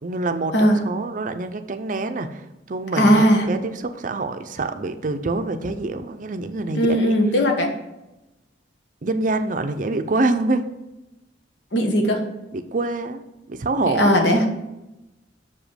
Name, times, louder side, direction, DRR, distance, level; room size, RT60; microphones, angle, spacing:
voice 1, 0.0-2.4 2.7-7.1 9.0-10.7 12.5-13.2 13.5-14.1, right 2 dB, 45° right, 8 dB, 0.5 m, -26 dB
voice 2, 3.0-3.4 6.7-7.7 11.7-12.2 14.0-14.4, equal, 70° left, 3 dB, 1.3 m, -17 dB
6.8 x 5.0 x 5.0 m, 0.95 s
head